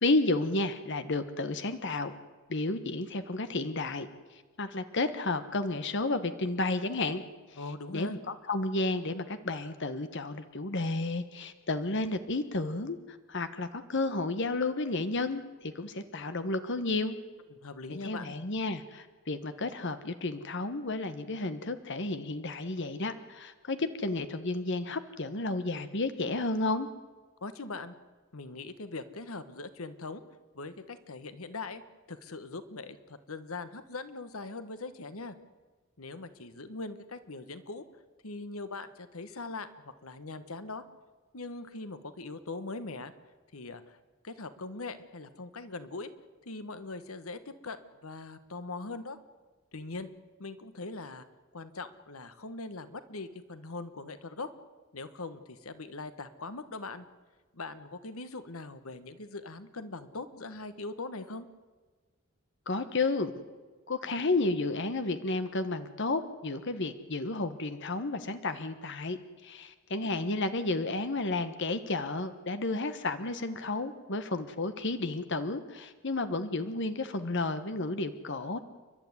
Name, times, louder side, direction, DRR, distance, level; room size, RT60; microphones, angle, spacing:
voice 1, 0.0-2.1 2.5-4.1 4.6-7.2 7.5-7.6 7.9-17.2 18.0-26.9 62.7-63.3 63.9-78.6, left 2 dB, 55° left, 10 dB, 1.2 m, -32 dB
voice 2, 7.5-8.2 17.6-18.3 27.4-27.9 28.3-30.2 30.5-31.8 32.1-35.3 36.0-37.9 38.2-40.8 41.3-43.1 43.5-44.0 44.2-46.1 46.4-49.2 49.7-50.1 50.4-51.2 51.5-54.5 54.9-57.1 57.5-61.5, left 3 dB, 85° left, 12 dB, 1.3 m, -41 dB
30.0 x 12.0 x 9.7 m, 1.4 s
head